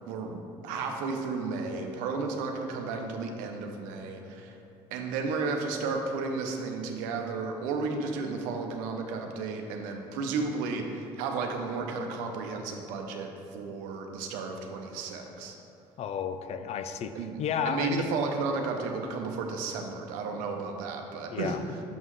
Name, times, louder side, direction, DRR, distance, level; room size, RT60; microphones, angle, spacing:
voice 1, 0.1-4.6 4.9-15.6 17.1-17.3 17.6-21.8, right 4 dB, 80° right, 3 dB, 0.7 m, -33 dB
voice 2, 16.0-17.1 17.4-18.1 21.3-21.6, left 7 dB, 50° left, 10 dB, 0.4 m, -32 dB
7.2 x 5.5 x 3.2 m, 2.6 s
supercardioid pair, 80°, 14 cm